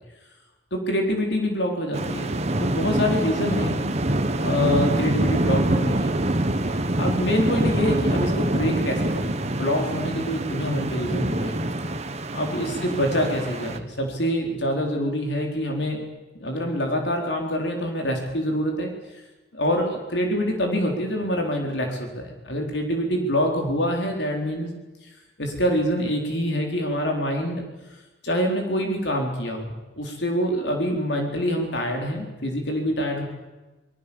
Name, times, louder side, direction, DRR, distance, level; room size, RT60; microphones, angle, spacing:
voice 1, 0.7-2.3 2.6-3.8 4.4-6.1 7.0-11.6 12.3-16.0 16.3-18.9 19.5-24.8 25.4-27.6 28.2-33.3, equal, 70° left, 2 dB, 4.2 m, -25 dB
sound 1, 1.9-13.8, right 1 dB, 35° right, 1.4 m, -25 dB
25.0 x 22.0 x 7.2 m, 1.1 s
head